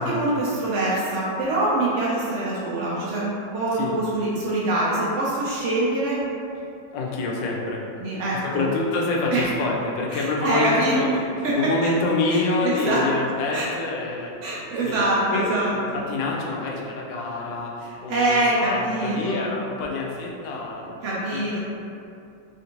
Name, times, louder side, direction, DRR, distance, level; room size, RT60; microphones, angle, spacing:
voice 1, 0.0-6.2 8.0-8.6 9.3-9.5 10.1-11.0 11.4-11.9 12.3-13.0 13.5-13.7 14.4-16.0 17.8-19.5 21.0-21.6, right 1 dB, 90° right, -7 dB, 0.6 m, -24 dB
voice 2, 6.9-7.9 8.4-11.1 11.4-14.4 14.8-15.0 15.3-15.8 16.1-20.9 21.3-21.6, left 3 dB, 75° left, -2 dB, 1.2 m, -27 dB
3.5 x 2.5 x 2.8 m, 2.5 s
omnidirectional pair, 2.1 m